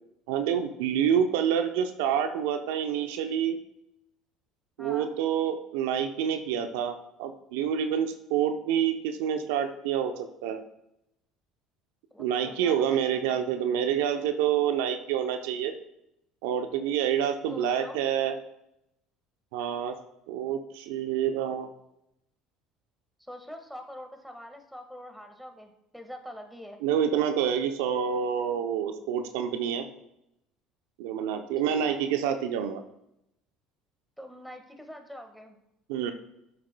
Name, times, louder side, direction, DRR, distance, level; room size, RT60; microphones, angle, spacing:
voice 1, 0.3-3.6 4.8-10.6 12.2-15.7 16.4-18.4 19.5-19.9 20.3-21.7 26.8-29.8 31.0-32.8 35.9-36.1, right 8 dB, 75° right, 7 dB, 0.6 m, -27 dB
voice 2, 4.8-5.1 12.1-13.4 17.5-18.0 23.2-26.8 31.6-32.0 34.2-35.6, equal, ahead, 5 dB, 1.6 m, -44 dB
13.0 x 7.6 x 2.2 m, 0.83 s
hypercardioid pair, 70°, 0 cm